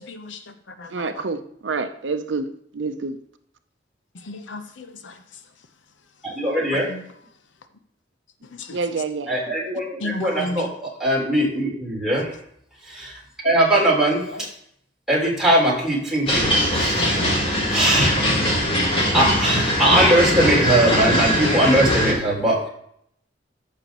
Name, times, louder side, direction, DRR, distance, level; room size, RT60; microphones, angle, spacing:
voice 1, 0.0-0.4 0.8-1.2 4.3-5.1 6.9-7.0 8.6-8.8 10.0-10.7, left 2 dB, 80° left, 8 dB, 0.8 m, -33 dB
voice 2, 0.9-2.4 2.8-3.1 8.7-9.3, right 4 dB, 75° right, 9 dB, 0.6 m, -27 dB
voice 3, 6.3-6.9 9.3-12.3 12.9-13.2 13.4-14.3 15.1-17.4 17.7-18.2 19.1-22.7, right 1 dB, 5° right, -6 dB, 3.6 m, -20 dB
sound 1, 16.3-22.1, equal, 30° left, 3.5 m, -21 dB
14.0 x 6.4 x 3.0 m, 0.69 s
head